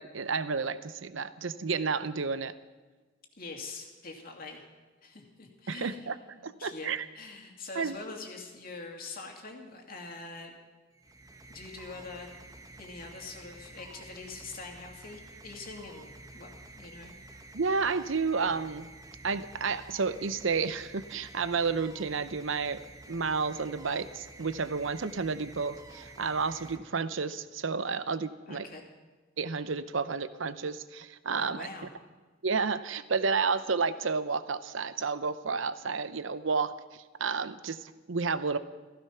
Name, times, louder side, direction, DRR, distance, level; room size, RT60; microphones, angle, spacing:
voice 1, 0.0-2.5 5.7-6.1 6.4-7.0 7.8-8.0 17.5-18.9 19.2-22.8 23.1-28.7 29.4-31.7 32.4-36.7 37.2-38.6, right 5 dB, 75° right, 13 dB, 0.8 m, -31 dB
voice 2, 3.4-4.6 5.0-10.5 11.5-12.3 12.8-16.5 16.8-17.1 28.5-28.8 31.4-31.9, left 3 dB, 50° left, 2 dB, 2.5 m, -44 dB
sound 1, 10.9-27.4, right 2 dB, 15° right, 1.0 m, -50 dB
15.5 x 15.0 x 5.8 m, 1.3 s
head